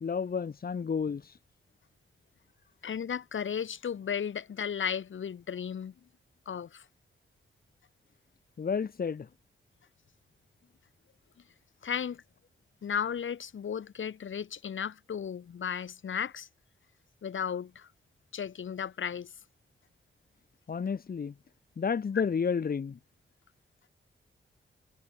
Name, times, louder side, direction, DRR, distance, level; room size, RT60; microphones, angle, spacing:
voice 1, 0.0-1.4 8.6-9.3 20.7-21.3 21.8-23.0, left 6 dB, 50° left, 1.9 m, -31 dB
voice 2, 2.8-5.9 6.4-6.8 11.8-12.2 12.8-16.5 17.2-17.9 18.3-19.3, left 7 dB, 75° left, 3.3 m, -34 dB
wide cardioid pair, 160°, 20 cm